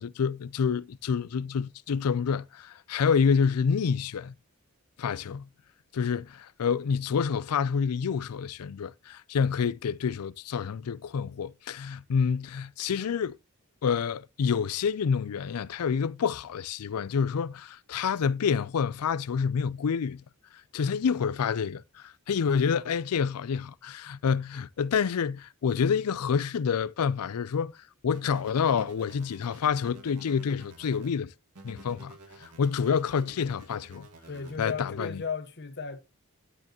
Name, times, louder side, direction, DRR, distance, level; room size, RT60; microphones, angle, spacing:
voice 1, 0.0-4.3 5.0-5.5 5.9-13.4 13.8-20.2 20.7-27.7 28.0-31.3 31.6-34.1 34.6-35.2, left 6 dB, 80° left, 0.4 m, -28 dB
sound 1, 28.1-31.1 31.5-34.6, right 2 dB, 90° right, 2.1 m, -51 dB
voice 2, 34.3-36.0, left 5 dB, 50° left, 1.2 m, -35 dB
9.9 x 9.6 x 3.0 m
head